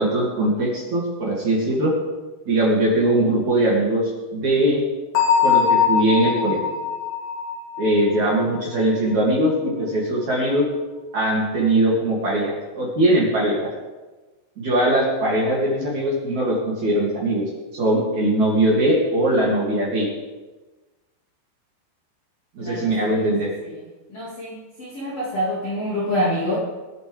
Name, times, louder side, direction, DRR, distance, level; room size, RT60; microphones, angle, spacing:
voice 1, 0.0-1.9 2.5-4.8 5.4-6.6 7.8-10.6 11.1-13.7 14.6-17.4 17.7-20.1 22.6-23.5, right 1 dB, 45° right, -5 dB, 3.4 m, -21 dB
Bell, 5.2-8.8, left 7 dB, 75° left, 5.2 m, -22 dB
voice 2, 22.6-23.2 23.6-23.7 24.1-26.6, equal, 40° left, -6 dB, 2.5 m, -26 dB
23.0 x 10.5 x 3.5 m, 1.2 s
omnidirectional pair, 5.7 m